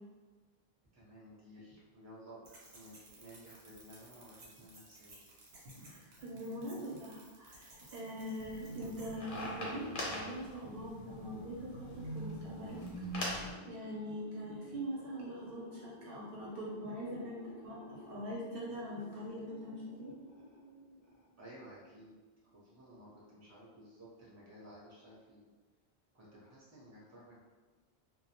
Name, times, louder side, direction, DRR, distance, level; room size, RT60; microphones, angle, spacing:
voice 1, 0.9-2.4 2.7-5.2 21.4-22.1 22.5-25.5 26.1-27.4, equal, 20° right, -7 dB, 0.6 m, -55 dB
sound 1, 2.4-9.2, right 2 dB, 90° right, 1.0 m, -58 dB
voice 2, 5.8-12.8 13.7-20.1, equal, 65° right, -5 dB, 0.7 m, -43 dB
sound 2, 8.4-13.5, equal, 60° left, 0.8 m, -42 dB
sound 3, 10.7-21.6, left 1 dB, 90° left, 1.0 m, -56 dB
2.2 x 2.1 x 2.8 m, 1.3 s
omnidirectional pair, 1.1 m